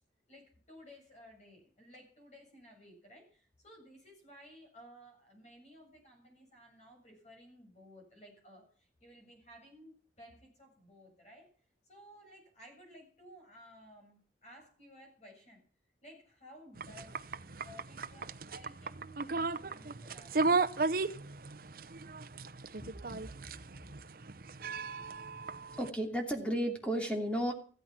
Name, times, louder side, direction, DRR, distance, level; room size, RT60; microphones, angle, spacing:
voice 1, 0.3-11.5 11.8-15.6 16.0-20.8 22.8-23.6, equal, 40° left, 1 dB, 7.4 m, -56 dB
sound 1, 16.8-25.9, right 3 dB, 55° right, 0.8 m, -36 dB
voice 2, 25.8-27.5, equal, 5° left, 2 dB, 2.8 m, -33 dB
15.5 x 13.0 x 6.0 m, 0.42 s
head